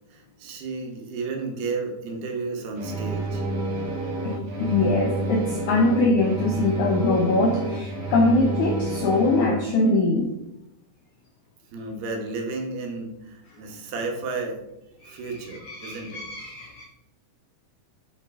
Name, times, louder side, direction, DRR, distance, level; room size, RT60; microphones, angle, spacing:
voice 1, 0.1-3.4 11.7-14.6 14.9-16.2, right 3 dB, 75° right, 3.4 m, -32 dB
sound 1, 2.7-9.5, right 2 dB, 50° right, 2.3 m, -29 dB
voice 2, 4.2-10.3 15.0-15.2 15.5-16.8, left 2 dB, 80° left, 1.7 m, -23 dB
8.1 x 5.7 x 4.8 m
omnidirectional pair, 4.7 m